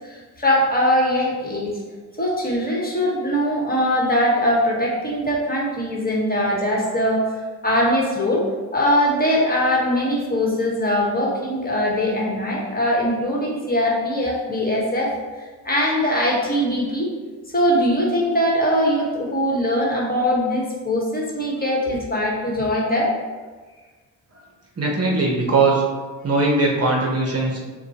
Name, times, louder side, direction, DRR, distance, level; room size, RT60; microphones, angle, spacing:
voice 1, 0.0-1.7 2.2-7.3 7.6-8.4 8.7-15.1 15.6-17.1 17.5-23.1, equal, 20° left, -3 dB, 1.4 m, -21 dB
voice 2, 24.8-25.8 26.2-27.6, right 3 dB, 35° right, -1 dB, 0.9 m, -20 dB
6.5 x 2.3 x 2.9 m, 1.4 s
hypercardioid pair, 50°, 44 cm